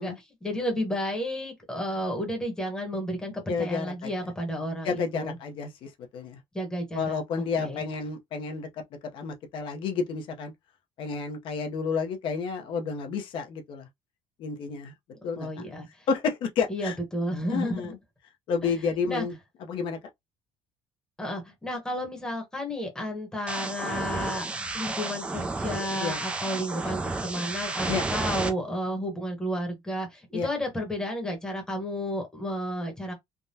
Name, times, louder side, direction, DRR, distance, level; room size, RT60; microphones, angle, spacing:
voice 1, 0.0-5.4 6.5-7.2 7.6-7.8 15.4-16.1 16.7-17.9 18.6-18.7 19.1-19.3 21.2-24.5 24.7-33.1, equal, 5° left, 1.0 m, -32 dB
voice 2, 3.5-4.1 4.8-6.4 6.9-8.7 9.1-10.5 11.0-13.9 14.4-14.9 15.2-15.5 16.1-16.9 17.5-18.0 18.5-19.3 19.7-20.0 26.0-26.2 27.9-28.0 30.3-30.5, left 5 dB, 55° left, 0.7 m, -30 dB
sound 1, 23.5-28.5, right 3 dB, 10° right, 0.4 m, -32 dB
3.4 x 2.1 x 2.7 m
cardioid pair, 175°, 11 cm